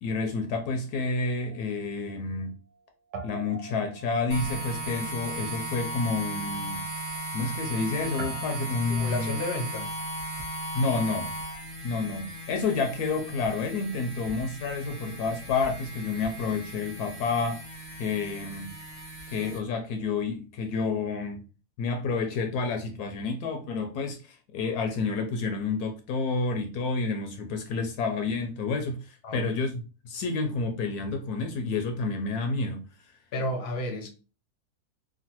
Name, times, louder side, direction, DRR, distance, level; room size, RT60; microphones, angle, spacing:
voice 1, 0.0-2.5 3.2-6.8 7.3-9.4 10.7-11.3 11.8-17.6 17.9-18.7 19.3-21.4 21.8-29.8 30.0-32.8, left 4 dB, 75° left, 1.0 m, -29 dB
Guitar, 1.0-2.8 3.1-11.8, right 3 dB, 80° right, 1.1 m, -47 dB
sound 1, 4.3-19.6, right 1 dB, 15° right, 0.7 m, -37 dB
voice 2, 8.9-9.9 29.2-29.5 33.3-34.1, left 1 dB, 55° left, 0.7 m, -32 dB
3.0 x 2.2 x 2.8 m
omnidirectional pair, 1.7 m